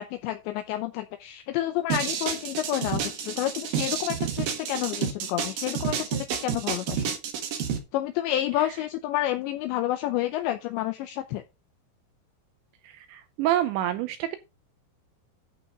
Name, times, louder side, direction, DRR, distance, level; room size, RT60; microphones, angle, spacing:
voice 1, 0.0-7.1 7.9-11.4, left 13 dB, 80° left, 8 dB, 2.7 m, -29 dB
sound 1, 1.9-7.8, right 8 dB, 60° right, 2.8 m, -30 dB
voice 2, 12.8-14.4, right 12 dB, 85° right, 11 dB, 2.7 m, -27 dB
11.5 x 5.3 x 5.0 m, 0.25 s
omnidirectional pair, 5.8 m